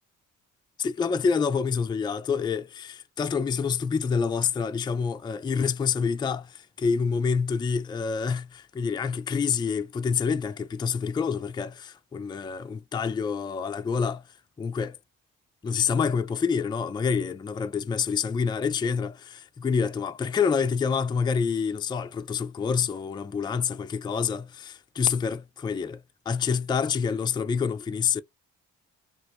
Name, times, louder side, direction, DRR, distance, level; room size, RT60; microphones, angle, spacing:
voice 1, 0.8-14.2 14.6-15.0 15.6-26.0 26.3-28.2, left 6 dB, 15° left, 0.3 m, -27 dB
2.9 x 2.6 x 2.9 m
cardioid pair, 90°, 30 cm